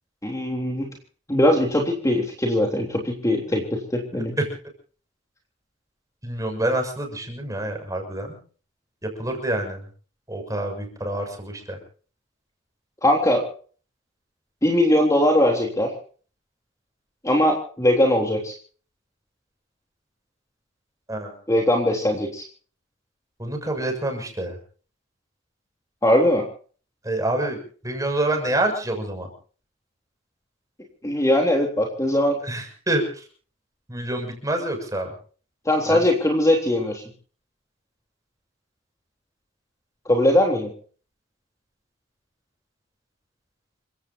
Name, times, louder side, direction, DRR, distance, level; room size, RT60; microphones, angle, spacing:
voice 1, 0.2-0.9 1.3-4.3 13.0-13.4 14.6-15.9 17.2-18.5 21.5-22.4 26.0-26.4 31.0-32.4 35.7-37.0 40.1-40.7, left 1 dB, 15° left, 1 dB, 3.4 m, -20 dB
voice 2, 4.1-4.5 6.2-8.4 9.0-9.8 10.3-11.8 21.1-21.3 23.4-24.6 27.0-27.6 27.8-29.3 32.4-33.2 33.9-35.1 35.9-36.0, right 1 dB, 20° right, 4 dB, 6.8 m, -27 dB
29.5 x 17.0 x 2.8 m, 0.43 s
head